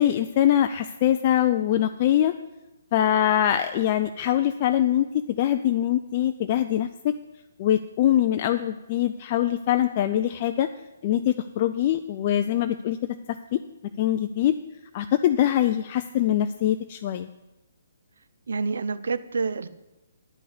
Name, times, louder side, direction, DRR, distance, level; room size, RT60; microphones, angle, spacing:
voice 1, 0.0-2.3 2.9-7.1 7.6-10.7 11.0-13.0 13.3-13.6 14.0-14.5 14.9-17.3, left 11 dB, 35° left, 9 dB, 0.3 m, -23 dB
voice 2, 18.5-19.7, right 4 dB, 60° right, 12 dB, 0.5 m, -28 dB
10.5 x 5.3 x 8.4 m, 1.0 s
figure-of-eight pair, 130°, 0 cm